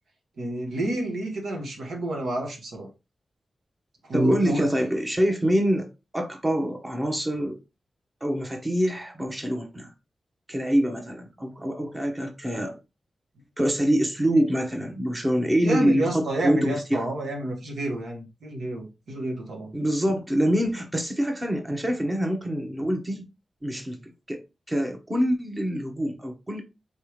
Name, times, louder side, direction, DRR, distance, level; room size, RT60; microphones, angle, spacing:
voice 1, 0.4-2.9 4.0-4.7 15.6-19.7, right 1 dB, 85° right, 1.4 m, -29 dB
voice 2, 4.1-5.9 6.1-7.6 8.2-9.9 10.5-12.8 13.6-17.1 19.7-23.2 23.6-24.4 24.7-26.6, equal, 20° right, 1.1 m, -25 dB
4.2 x 3.3 x 3.1 m
cardioid pair, 75°, 0 cm